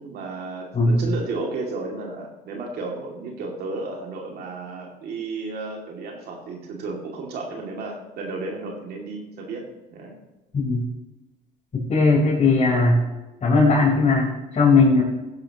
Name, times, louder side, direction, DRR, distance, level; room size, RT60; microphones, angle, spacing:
voice 1, 0.0-10.2, right 3 dB, 70° right, 0 dB, 2.5 m, -33 dB
voice 2, 10.5-10.8 11.7-13.0 13.4-15.0, left 3 dB, 40° left, -7 dB, 4.4 m, -18 dB
15.5 x 11.5 x 3.0 m, 1.1 s
supercardioid pair, 85°, 17 cm